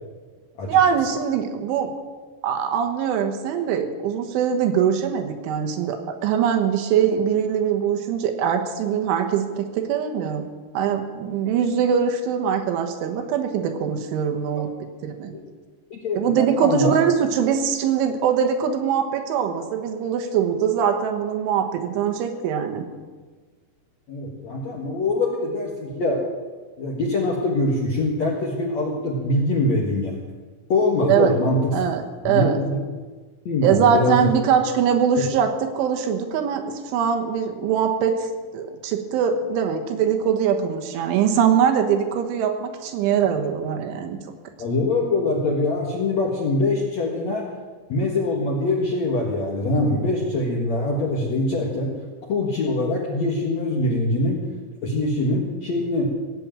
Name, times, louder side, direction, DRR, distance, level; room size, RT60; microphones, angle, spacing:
voice 1, 0.7-1.9 2.4-10.5 10.8-14.7 15.0-15.4 16.2-22.9 31.1-31.3 31.7-32.6 33.6-38.3 38.5-44.2, right 8 dB, 85° right, 5 dB, 3.7 m, -22 dB
voice 2, 15.9-17.0 24.1-26.2 26.8-30.1 30.7-31.7 32.2-32.8 33.5-34.3 44.6-47.5 47.9-51.9 52.3-54.4 54.8-56.1, left 2 dB, 60° left, -2 dB, 1.8 m, -23 dB
17.5 x 7.6 x 8.8 m, 1.4 s
omnidirectional pair, 5.4 m